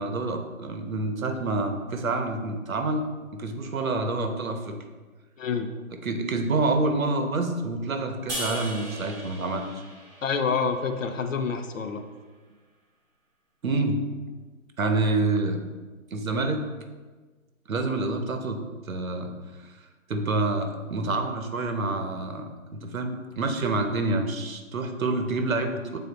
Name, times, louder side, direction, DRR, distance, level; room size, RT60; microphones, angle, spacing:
voice 1, 0.0-3.0 3.3-4.8 6.0-9.8 13.6-14.0 14.8-15.6 16.1-16.6 17.7-18.6 18.9-19.3 19.6-19.7 20.1-26.0, right 2 dB, 75° right, 6 dB, 1.0 m, -27 dB
voice 2, 5.4-5.7 10.2-12.0, left 5 dB, 65° left, 8 dB, 0.8 m, -27 dB
sound 1, 8.3-11.6, equal, 5° right, 1.0 m, -38 dB
7.2 x 4.0 x 3.9 m, 1.3 s
figure-of-eight pair, 155°, 42 cm